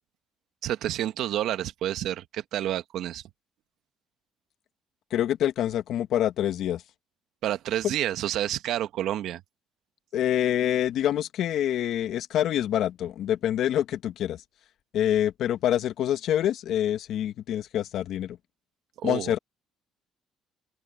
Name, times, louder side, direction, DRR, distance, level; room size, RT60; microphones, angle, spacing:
voice 1, 0.6-3.2 7.4-9.4 19.0-19.3, right 12 dB, 75° right, 1.4 m, -29 dB
voice 2, 5.1-6.8 10.1-14.4 14.9-18.4 19.0-19.4, left 11 dB, 70° left, 1.3 m, -26 dB
open air
cardioid pair, 90°, 0 cm